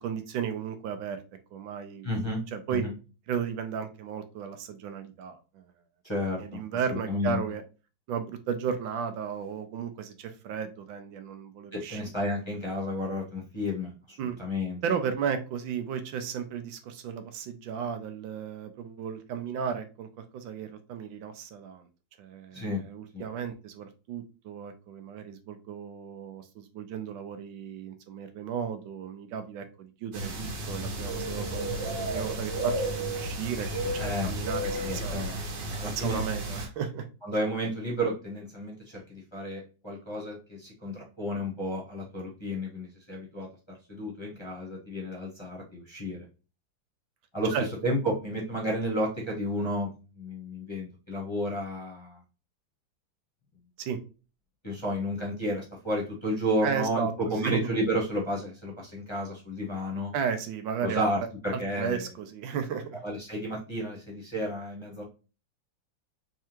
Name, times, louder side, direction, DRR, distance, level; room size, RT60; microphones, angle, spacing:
voice 1, 0.0-1.2 1.5-2.1 2.5-2.9 3.3-5.6 6.4-7.6 8.1-12.0 14.2-14.4 14.8-21.9 22.2-32.7 33.1-35.4 35.8-37.1 47.5-47.6 53.8-54.0 56.6-57.1 57.4-57.6 60.1-61.0 61.5-63.0, right 7 dB, 90° right, 8 dB, 1.4 m, -34 dB
voice 2, 2.0-2.4 2.7-2.9 6.0-6.6 6.9-7.4 11.7-14.8 22.5-22.8 23.1-23.2 34.0-34.3 34.8-35.3 35.7-36.2 37.2-46.2 47.3-47.5 47.8-52.2 54.6-60.1 60.8-62.1 63.0-65.0, equal, 20° left, -4 dB, 0.8 m, -32 dB
sound 1, 30.1-36.7, right 1 dB, 70° right, 1.6 m, -32 dB
3.6 x 3.3 x 2.9 m, 0.33 s
omnidirectional pair, 2.1 m